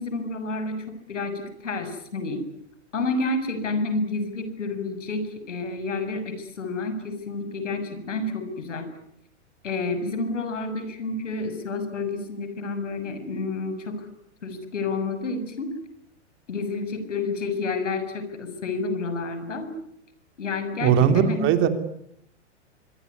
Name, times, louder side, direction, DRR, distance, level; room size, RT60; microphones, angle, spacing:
voice 1, 0.0-2.4 2.9-8.9 9.6-14.1 14.4-15.7 16.5-19.7 20.4-21.5, left 3 dB, 85° left, 10 dB, 7.0 m, -29 dB
voice 2, 20.8-21.7, right 8 dB, 35° right, 9 dB, 3.3 m, -19 dB
26.0 x 23.5 x 9.6 m, 0.72 s
hypercardioid pair, 130°, 36 cm